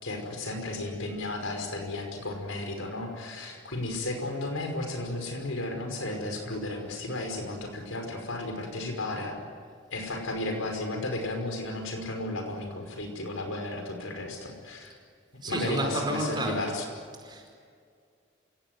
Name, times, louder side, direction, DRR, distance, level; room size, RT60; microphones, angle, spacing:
voice 1, 0.0-9.4 9.9-15.0 15.4-16.9, left 2 dB, 80° left, 4 dB, 5.5 m, -34 dB
voice 2, 15.4-16.6 17.2-17.5, right 1 dB, 20° right, 2 dB, 4.8 m, -30 dB
27.5 x 17.5 x 9.5 m, 2.2 s
head